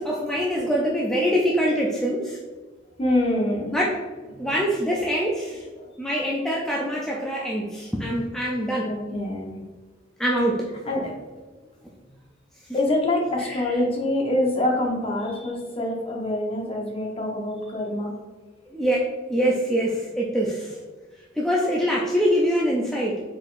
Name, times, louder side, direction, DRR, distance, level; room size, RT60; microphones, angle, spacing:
voice 1, 0.0-2.4 3.7-4.0 4.4-5.7 6.0-8.9 10.2-10.7 13.4-13.8 18.7-20.8 21.4-23.2, equal, 5° left, -4 dB, 0.4 m, -24 dB
voice 2, 3.0-3.7 4.3-4.6 5.8-5.9 8.8-9.6 10.9-11.1 12.7-18.1, left 1 dB, 30° left, 0 dB, 0.8 m, -25 dB
4.3 x 3.8 x 2.5 m, 1.3 s
head